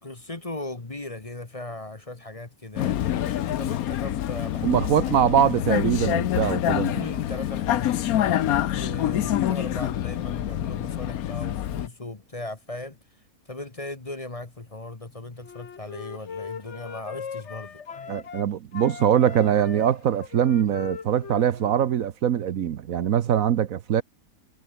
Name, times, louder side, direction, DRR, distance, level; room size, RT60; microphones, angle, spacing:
voice 1, 0.0-4.9 6.9-13.0 13.4-18.2, left 2 dB, 25° left, 1.6 m, -38 dB
Vehicle, 2.8-11.9, left 12 dB, 75° left, 1.2 m, -26 dB
voice 2, 4.6-6.9 18.1-24.0, right 9 dB, 70° right, 1.3 m, -22 dB
Wind instrument woodwind instrument, 15.4-18.5 18.7-22.0, left 6 dB, 50° left, 1.6 m, -39 dB
omnidirectional pair, 1.6 m